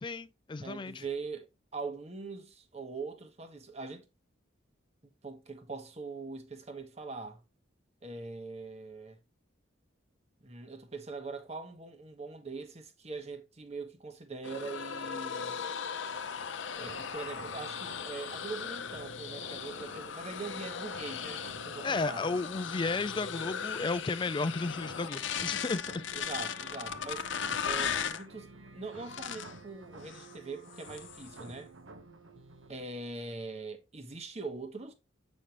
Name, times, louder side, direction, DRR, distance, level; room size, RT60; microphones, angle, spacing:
voice 1, 0.0-1.0 21.8-26.0, left 3 dB, 25° left, 0.4 m, -33 dB
voice 2, 0.6-4.0 5.2-7.4 8.0-9.2 10.4-15.6 16.7-22.3 26.1-27.2 27.6-31.7 32.7-34.9, right 4 dB, 35° right, 1.2 m, -42 dB
sound 1, 14.4-28.3 29.0-29.6 30.0-30.4 30.7-31.4, left 7 dB, 70° left, 0.7 m, -38 dB
sound 2, 16.9-32.9, right 2 dB, 80° right, 1.2 m, -52 dB
8.3 x 5.3 x 3.0 m
head